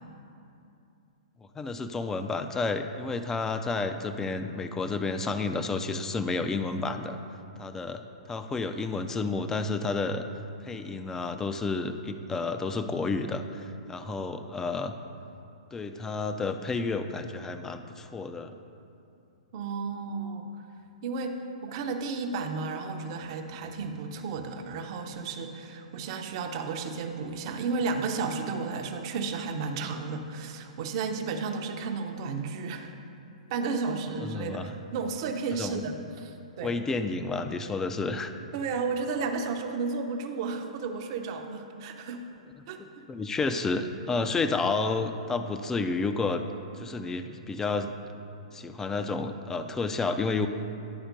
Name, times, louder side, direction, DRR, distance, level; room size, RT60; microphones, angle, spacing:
voice 1, 1.5-7.2 7.6-10.2 10.6-14.9 15.7-18.5 34.2-34.7 35.5-35.9 36.6-38.3 42.8-46.4 46.7-47.9 48.5-50.5, left 3 dB, 15° left, 8 dB, 0.4 m, -31 dB
voice 2, 19.5-20.5 21.0-32.9 33.5-34.6 34.9-36.7 38.5-42.2 42.7-42.8, right 4 dB, 45° right, 5 dB, 0.7 m, -33 dB
10.5 x 4.3 x 5.2 m, 2.7 s
hypercardioid pair, 115°, 4 cm